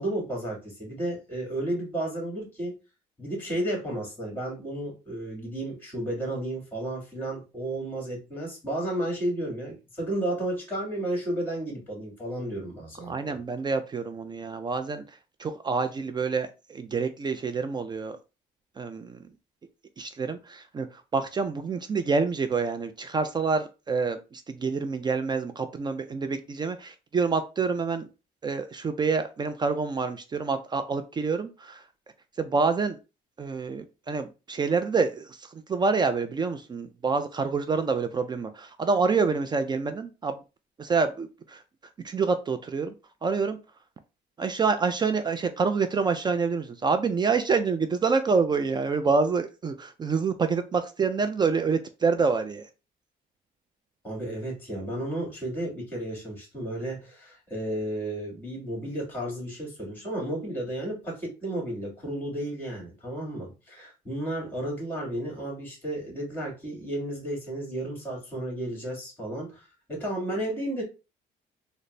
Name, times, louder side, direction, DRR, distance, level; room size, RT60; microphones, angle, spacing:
voice 1, 0.0-2.7 3.2-13.4 54.0-70.8, right 1 dB, 10° left, -1 dB, 2.0 m, -33 dB
voice 2, 13.1-15.0 15.4-18.2 18.8-19.2 20.0-20.9 21.1-28.1 28.4-31.8 32.4-33.0 33.4-40.4 40.8-41.6 42.0-42.9 43.2-43.6 44.4-52.6, right 4 dB, 25° right, 9 dB, 0.4 m, -27 dB
4.0 x 2.1 x 3.2 m, 0.30 s
cardioid pair, 110°, 17 cm